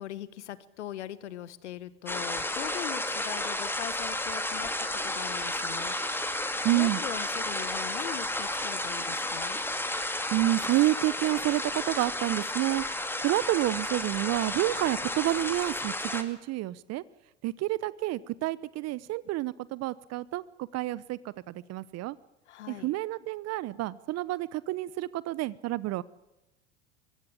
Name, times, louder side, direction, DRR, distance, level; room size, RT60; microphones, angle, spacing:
voice 1, 0.0-9.6 22.5-22.9, left 12 dB, 80° left, 17 dB, 1.2 m, -41 dB
sound 1, 2.1-16.2, left 1 dB, 5° left, 2.3 m, -32 dB
voice 2, 6.6-7.0 10.3-12.8 13.2-17.0 17.4-22.2 22.7-26.0, right 17 dB, 50° right, 20 dB, 0.9 m, -29 dB
24.0 x 15.5 x 8.7 m, 0.95 s
hypercardioid pair, 80°, 34 cm